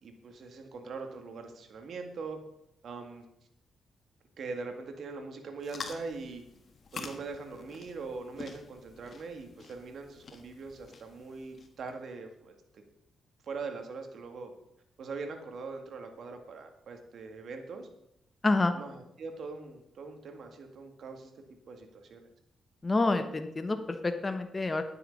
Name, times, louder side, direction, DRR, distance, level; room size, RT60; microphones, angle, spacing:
voice 1, 0.0-2.4 2.8-3.2 4.4-6.4 6.9-12.8 13.4-14.5 15.0-17.9 18.6-21.3 21.7-22.3, right 4 dB, 65° right, 5 dB, 2.2 m, -42 dB
sound 1, 5.6-11.9, left 4 dB, 50° left, 1.6 m, -47 dB
voice 2, 18.4-18.7 22.8-24.8, left 2 dB, 25° left, 8 dB, 1.1 m, -28 dB
11.0 x 9.6 x 5.5 m, 0.79 s
cardioid pair, 90°, 0 cm